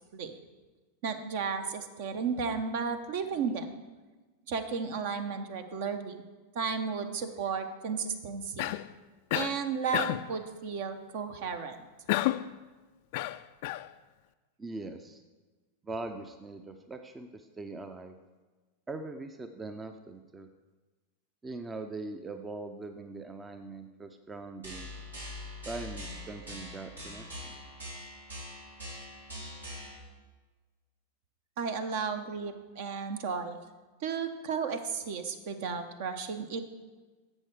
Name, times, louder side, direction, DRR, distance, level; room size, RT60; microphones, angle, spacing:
voice 1, 1.0-3.7 4.5-6.1 6.5-8.7 9.3-11.8 31.6-33.6 34.0-36.6, right 5 dB, 50° right, 8 dB, 0.9 m, -33 dB
Cough, 8.6-8.9 9.3-9.6 9.9-10.3 12.1-12.5 13.1-13.9, left 16 dB, 50° left, 0.3 m, -30 dB
voice 2, 14.6-15.2 15.8-18.1 18.9-20.5 21.4-24.9 25.7-27.6, right 3 dB, 15° right, 7 dB, 0.6 m, -41 dB
sound 1, 24.6-30.0, left 1 dB, 80° right, 3.0 m, -43 dB
11.0 x 7.6 x 4.8 m, 1.3 s
figure-of-eight pair, 90°, 0 cm